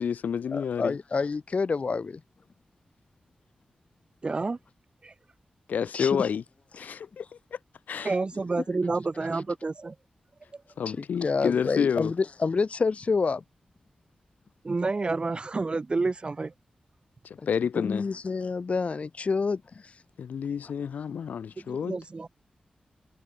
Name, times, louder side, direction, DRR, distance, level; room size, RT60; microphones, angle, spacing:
voice 1, 0.0-1.0 5.7-6.4 6.7-7.2 7.9-8.1 10.8-12.1 17.5-18.0 20.2-22.0, left 7 dB, 90° left, 0.5 m, -29 dB
voice 2, 0.5-2.2 5.9-6.3 10.9-13.4 17.4-17.5 17.7-19.6, left 4 dB, 50° left, 0.9 m, -28 dB
voice 3, 4.2-4.6 5.0-5.1 8.0-9.9 14.6-16.5 21.6-22.3, right 3 dB, 40° right, 0.7 m, -29 dB
wide cardioid pair, 80°, 3 cm